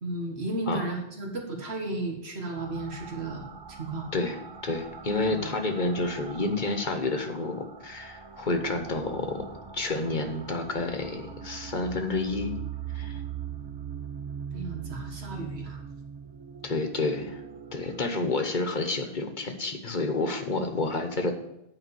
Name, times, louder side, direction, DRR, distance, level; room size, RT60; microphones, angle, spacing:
voice 1, 0.0-3.5 3.8-4.1 5.3-5.6 14.5-15.9, right 2 dB, 85° right, 1 dB, 1.8 m, -34 dB
sound 1, 2.6-18.0, right 7 dB, 35° right, 0.4 m, -41 dB
voice 2, 4.1-9.5 9.7-12.5 12.9-13.2 16.6-17.4 17.7-21.3, left 2 dB, 50° left, 6 dB, 1.2 m, -29 dB
9.2 x 5.1 x 7.0 m, 0.83 s
omnidirectional pair, 1.1 m